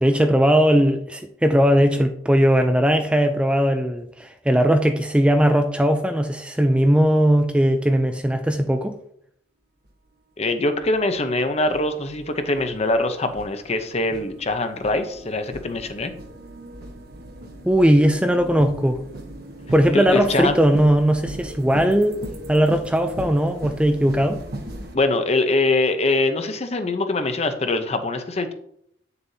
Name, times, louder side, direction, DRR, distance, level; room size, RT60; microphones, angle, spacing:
voice 1, 0.0-8.9 17.7-19.0 19.7-22.2 22.5-24.4, equal, 5° right, 0.4 m, -18 dB
sound 1, 9.9-10.0 10.7-25.0, right 1 dB, 60° right, 1.1 m, -38 dB
voice 2, 10.4-16.1 19.9-20.6 24.9-28.5, left 2 dB, 35° left, 0.7 m, -23 dB
8.8 x 6.8 x 2.7 m
head